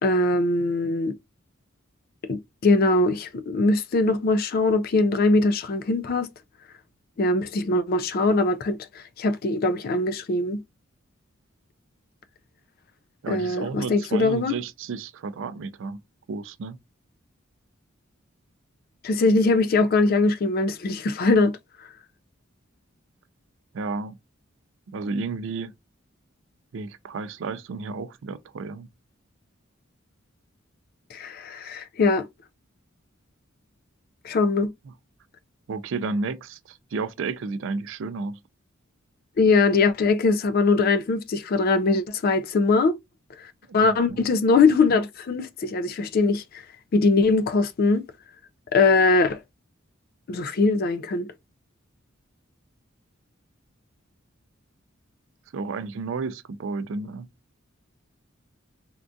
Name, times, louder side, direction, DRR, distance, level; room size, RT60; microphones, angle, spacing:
voice 1, 0.0-1.1 2.3-6.3 7.2-10.6 13.3-14.6 19.0-21.5 31.1-32.2 34.2-34.7 39.4-43.0 43.7-46.4 46.9-48.0 48.7-49.4 50.3-51.3, left 3 dB, 45° left, 0.4 m, -21 dB
voice 2, 13.2-16.0 16.3-16.8 23.7-24.2 24.9-25.7 26.7-28.9 35.7-38.4 43.7-44.2 55.5-57.3, right 4 dB, 65° right, 0.4 m, -32 dB
3.5 x 2.3 x 2.5 m
head